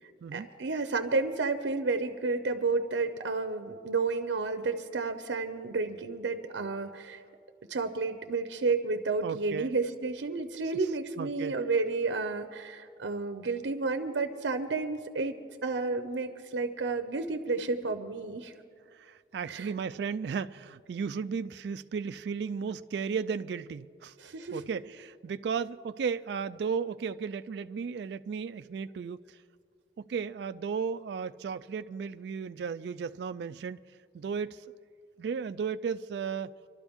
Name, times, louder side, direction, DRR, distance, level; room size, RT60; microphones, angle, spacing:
voice 1, 0.3-7.2 7.7-18.5 19.5-19.7 24.2-24.6, right 3 dB, 80° right, 0.7 m, -31 dB
voice 2, 9.2-9.7 11.2-11.6 18.9-24.1 24.5-29.4 30.0-33.8 34.1-34.6 35.2-36.6, right 6 dB, 65° right, 0.3 m, -34 dB
25.5 x 12.5 x 3.6 m
head